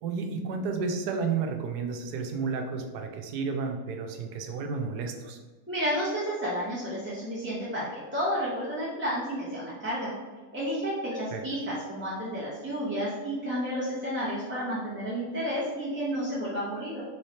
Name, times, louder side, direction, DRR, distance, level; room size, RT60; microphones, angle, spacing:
voice 1, 0.0-5.4 11.3-11.4, right 5 dB, 90° right, 4 dB, 1.2 m, -32 dB
voice 2, 5.7-10.1 10.5-17.0, equal, 10° right, -9 dB, 0.9 m, -31 dB
3.9 x 3.3 x 4.2 m, 1.3 s
omnidirectional pair, 1.6 m